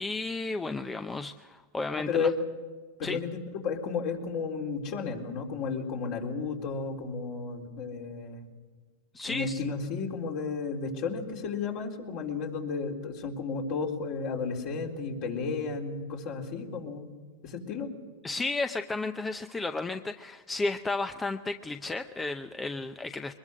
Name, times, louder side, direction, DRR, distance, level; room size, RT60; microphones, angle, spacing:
voice 1, 0.0-2.3 3.0-3.2 9.1-9.6 18.2-23.3, left 3 dB, 15° left, 8 dB, 0.7 m, -33 dB
voice 2, 2.0-2.3 3.0-8.5 9.3-17.1 17.4-17.9, left 5 dB, 50° left, 1 dB, 3.9 m, -33 dB
23.0 x 21.0 x 6.4 m, 1.4 s
hypercardioid pair, 125°, 0 cm